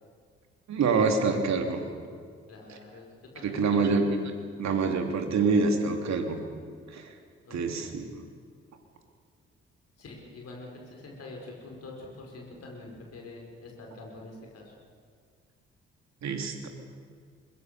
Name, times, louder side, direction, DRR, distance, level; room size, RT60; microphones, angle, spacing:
voice 1, 0.7-1.8 2.7-2.8 3.4-4.1 4.6-6.4 6.9-7.1 7.5-8.2 16.2-16.7, right 4 dB, 60° right, 5 dB, 3.1 m, -26 dB
voice 2, 2.5-3.1 3.3-4.1 7.4-7.9 10.0-14.7, left 2 dB, 50° left, -1 dB, 5.4 m, -45 dB
24.5 x 21.5 x 6.9 m, 2.1 s
figure-of-eight pair, 40°, 32 cm